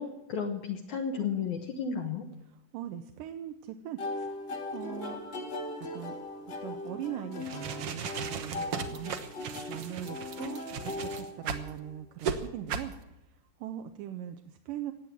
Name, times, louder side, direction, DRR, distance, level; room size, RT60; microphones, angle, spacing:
voice 1, 0.0-2.3, left 6 dB, 65° left, 3 dB, 2.4 m, -33 dB
voice 2, 2.5-5.2 5.9-6.2 6.6-9.1 9.7-12.9 13.6-14.9, right 11 dB, 85° right, 7 dB, 2.3 m, -40 dB
sound 1, 4.0-11.9, left 2 dB, 50° left, 1.4 m, -39 dB
sound 2, 7.3-11.7 12.2-12.4 12.7-12.9, right 7 dB, 65° right, 1.6 m, -36 dB
16.5 x 8.7 x 9.2 m, 0.91 s
omnidirectional pair, 3.8 m